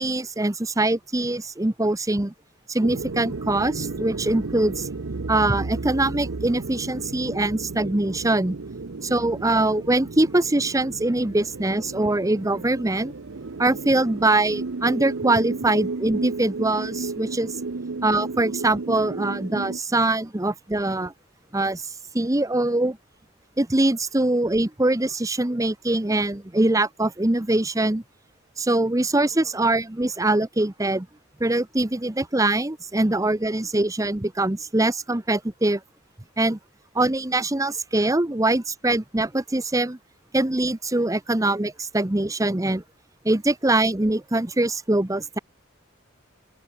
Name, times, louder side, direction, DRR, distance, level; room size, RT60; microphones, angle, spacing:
voice 1, 0.0-2.3 2.7-4.9 5.3-8.6 9.0-13.1 13.6-17.5 18.0-21.1 21.5-21.9 22.1-23.0 23.6-28.0 28.6-31.1 31.4-35.8 36.4-36.6 36.9-40.0 40.3-42.8 43.2-45.4, right 2 dB, 15° right, 0.8 m, -23 dB
sound 1, 2.8-19.8, right 3 dB, 80° right, 0.8 m, -33 dB
open air
head